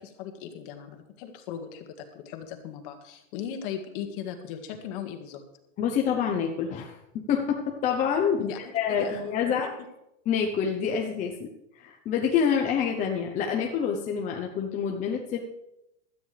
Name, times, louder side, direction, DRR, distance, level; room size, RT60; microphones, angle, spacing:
voice 1, 0.0-1.9 2.1-5.4 8.4-9.6, left 8 dB, 45° left, 5 dB, 2.0 m, -38 dB
voice 2, 5.8-9.7 10.3-11.5 11.7-15.4, left 7 dB, 20° left, 2 dB, 0.9 m, -27 dB
16.5 x 13.0 x 3.4 m, 0.87 s
supercardioid pair, 165°, 38 cm